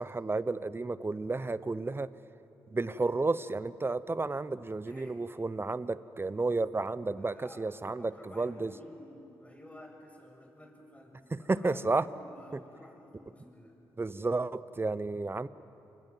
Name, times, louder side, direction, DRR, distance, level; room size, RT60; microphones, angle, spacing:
voice 1, 0.0-2.1 2.7-8.7 11.3-12.0 12.5-12.6 14.0-15.5, right 3 dB, 25° right, 16 dB, 1.0 m, -32 dB
voice 2, 4.8-5.2 7.2-7.6 8.0-13.8, left 1 dB, 15° left, 2 dB, 7.0 m, -53 dB
29.0 x 22.0 x 7.7 m, 2.9 s
supercardioid pair, 50°, 9 cm